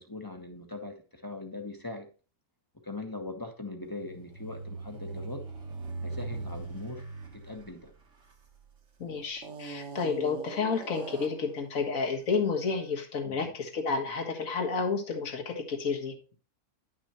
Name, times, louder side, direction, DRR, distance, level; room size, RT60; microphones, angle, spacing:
voice 1, 0.0-2.1 2.8-5.4 6.0-7.0 7.3-7.9 13.2-13.5, left 2 dB, 15° left, 1.0 m, -41 dB
sound 1, 3.9-8.7 9.4-11.6, right 3 dB, 55° right, 1.6 m, -41 dB
voice 2, 9.0-16.1, left 4 dB, 65° left, 1.9 m, -31 dB
10.5 x 6.1 x 2.9 m
omnidirectional pair, 1.6 m